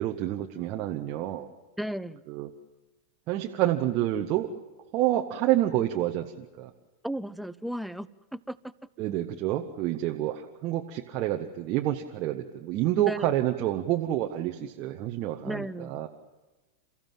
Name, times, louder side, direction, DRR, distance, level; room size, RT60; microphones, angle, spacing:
voice 1, 0.0-1.5 2.3-2.5 3.3-4.5 4.9-6.7 9.0-16.1, right 13 dB, 40° right, 2 dB, 1.2 m, -28 dB
voice 2, 1.8-2.2 7.0-8.7 13.0-13.4 15.4-16.0, equal, ahead, 16 dB, 0.7 m, -35 dB
29.0 x 15.0 x 7.6 m, 1.1 s
figure-of-eight pair, 90°, 0 cm